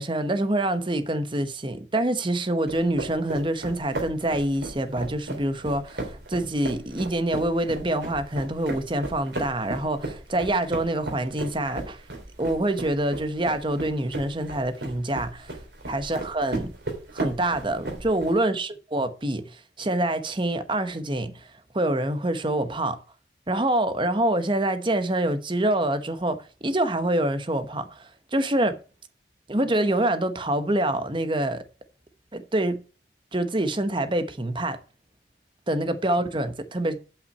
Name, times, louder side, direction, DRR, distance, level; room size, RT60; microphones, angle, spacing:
voice 1, 0.0-12.0 12.4-15.6 15.9-16.7 17.1-21.5 21.7-23.0 23.5-28.8 29.5-31.6 32.3-32.8 33.3-34.8 35.7-37.0, right 1 dB, 30° right, 1.0 m, -26 dB
sound 1, 2.7-18.3, right 2 dB, 70° right, 3.1 m, -36 dB
8.4 x 5.9 x 7.8 m
head